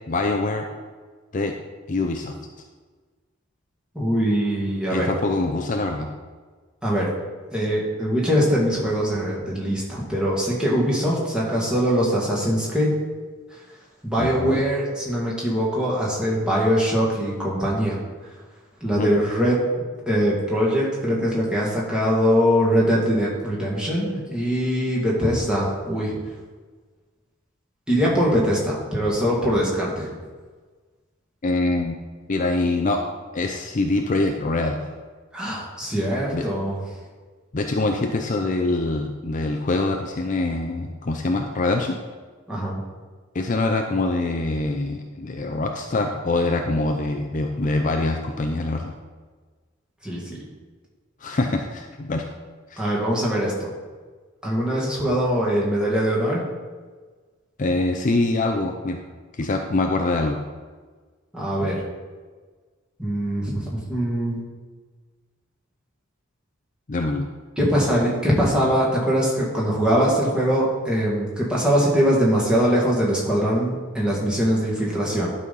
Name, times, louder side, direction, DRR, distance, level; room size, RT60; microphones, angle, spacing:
voice 1, 0.1-0.7 1.3-1.5 1.9-2.3 4.9-6.1 14.2-14.6 19.0-19.1 31.4-32.0 32.3-33.0 33.3-34.9 36.3-36.4 37.5-42.0 43.3-48.9 51.2-52.2 52.7-52.8 57.6-59.0 59.4-60.4 66.9-67.3, left 2 dB, 40° left, 4 dB, 0.5 m, -24 dB
voice 2, 3.9-5.1 6.8-7.1 7.5-12.9 14.0-18.0 18.8-19.6 20.1-26.2 27.9-30.1 35.3-36.8 42.5-42.8 50.0-50.4 52.8-53.7 54.4-56.5 61.3-61.8 63.0-64.4 67.6-75.3, equal, 5° right, -6 dB, 2.0 m, -22 dB
11.5 x 4.2 x 5.4 m, 1.4 s
head